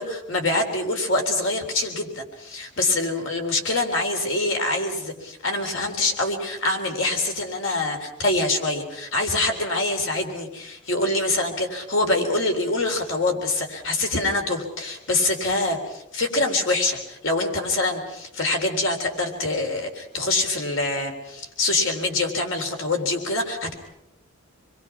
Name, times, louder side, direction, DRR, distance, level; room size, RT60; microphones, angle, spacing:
voice 1, 0.0-23.7, left 2 dB, 60° left, 3 dB, 3.7 m, -25 dB
28.0 x 22.0 x 5.9 m, 0.83 s
head